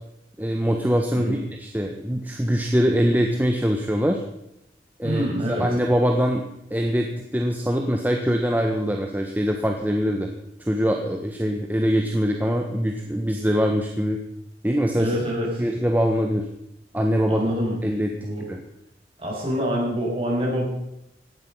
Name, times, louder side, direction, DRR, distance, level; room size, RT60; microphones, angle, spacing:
voice 1, 0.4-4.2 5.0-10.3 10.6-14.2 14.6-15.1 15.6-16.5 16.9-17.5 17.8-18.1 18.5-18.6, equal, 10° right, 2 dB, 1.3 m, -23 dB
voice 2, 5.0-5.7 15.0-15.6 17.3-17.8 18.2-18.5 19.2-20.7, equal, 30° right, -4 dB, 7.4 m, -26 dB
17.5 x 12.5 x 5.7 m, 0.81 s
head